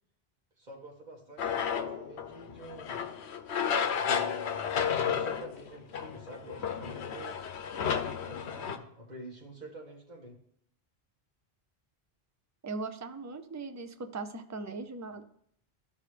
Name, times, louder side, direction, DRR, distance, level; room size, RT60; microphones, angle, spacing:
voice 1, 0.6-3.0 4.0-7.4 8.2-10.4, right 1 dB, 45° right, -2 dB, 1.8 m, -47 dB
sound 1, 1.4-8.8, left 7 dB, 90° left, 0.9 m, -32 dB
voice 2, 12.6-15.2, right 3 dB, 25° right, 8 dB, 0.3 m, -39 dB
14.0 x 5.3 x 3.3 m, 0.69 s
omnidirectional pair, 1.1 m